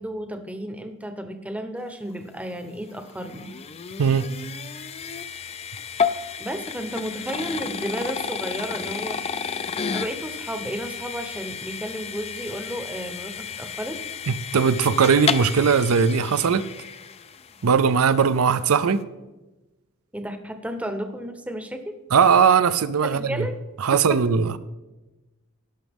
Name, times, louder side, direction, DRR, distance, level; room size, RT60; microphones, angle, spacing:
voice 1, 0.0-3.5 6.4-9.2 9.9-14.0 20.1-22.0 23.0-23.5 23.9-24.2, equal, 5° right, 7 dB, 0.8 m, -33 dB
sound 1, 2.5-17.7, left 6 dB, 30° left, 0.4 m, -32 dB
voice 2, 14.3-16.7 17.6-19.0 22.1-23.5 23.8-24.6, right 6 dB, 75° right, 15 dB, 0.5 m, -19 dB
17.0 x 6.2 x 3.5 m, 1.1 s
head